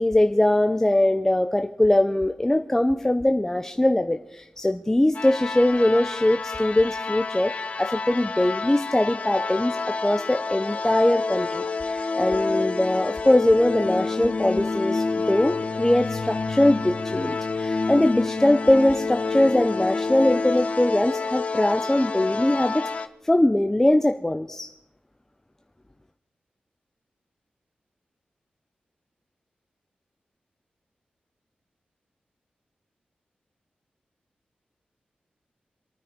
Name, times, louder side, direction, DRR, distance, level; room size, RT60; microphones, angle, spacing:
voice 1, 0.0-24.7, left 1 dB, 10° left, 6 dB, 0.6 m, -22 dB
sound 1, 5.1-23.1, left 4 dB, 45° left, 1.0 m, -28 dB
26.5 x 9.6 x 5.1 m, 0.83 s
wide cardioid pair, 100°, 3 cm